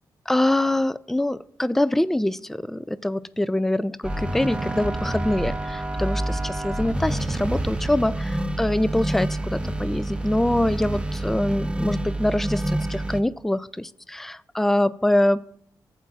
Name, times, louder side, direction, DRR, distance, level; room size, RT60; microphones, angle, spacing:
voice 1, 0.3-15.4, left 1 dB, 5° left, 16 dB, 0.3 m, -24 dB
sound 1, 4.0-13.2, right 1 dB, 15° right, 0.7 m, -28 dB
14.5 x 8.4 x 2.5 m, 0.63 s
cardioid pair, 70°, 8 cm